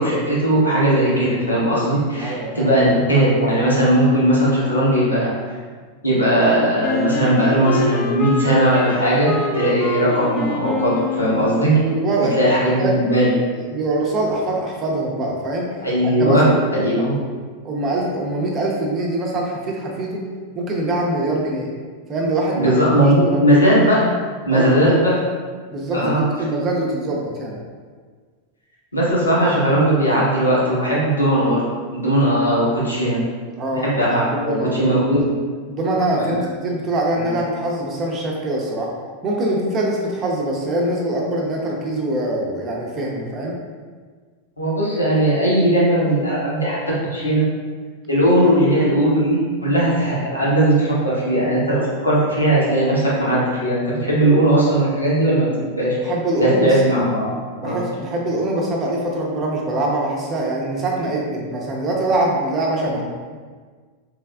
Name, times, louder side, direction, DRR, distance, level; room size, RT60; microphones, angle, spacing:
voice 1, 0.0-5.3 6.0-11.8 12.2-13.3 15.8-16.5 16.7-17.1 22.5-24.0 24.4-25.2 25.9-26.2 28.9-31.6 31.9-33.2 33.8-35.2 37.1-37.3 44.6-47.4 48.1-56.0 56.4-57.3 57.6-57.9, right 1 dB, 80° left, -7 dB, 1.0 m, -18 dB
voice 2, 2.2-2.7 11.8-12.9 13.6-15.7 16.0-16.5 16.8-17.1 17.6-20.2 20.5-21.7 22.1-23.5 24.5-25.0 25.7-27.6 33.6-33.9 34.3-34.9 35.7-38.9 39.2-43.5 56.0-57.1 57.6-63.0, right 1 dB, 30° right, -1 dB, 0.6 m, -23 dB
Wind instrument woodwind instrument, 6.8-11.9, left 3 dB, 25° left, 0.4 m, -26 dB
3.4 x 3.2 x 2.3 m, 1.6 s
figure-of-eight pair, 90°, 0 cm